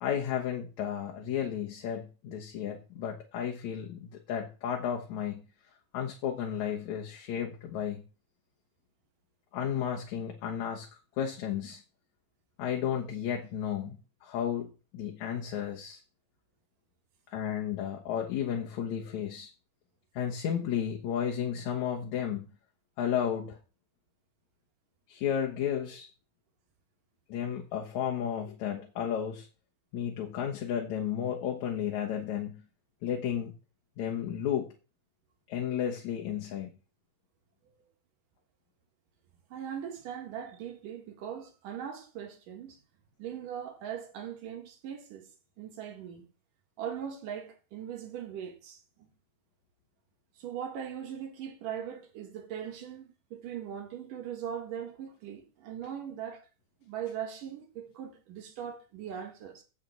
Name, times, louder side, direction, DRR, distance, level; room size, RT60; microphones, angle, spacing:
voice 1, 0.0-5.5 5.9-8.1 9.5-10.9 11.2-11.8 12.6-14.0 14.2-16.0 17.3-19.5 20.1-22.5 23.0-23.6 25.1-26.1 27.3-29.5 29.9-32.6 33.0-33.5 34.0-34.7 35.5-36.7, left 9 dB, 65° left, 2.3 m, -33 dB
voice 2, 39.5-42.8 43.2-45.3 45.6-46.3 46.8-49.1 50.4-53.0 53.3-56.4 56.8-59.6, right 9 dB, 70° right, 3.3 m, -40 dB
7.0 x 6.7 x 8.0 m
omnidirectional pair, 4.0 m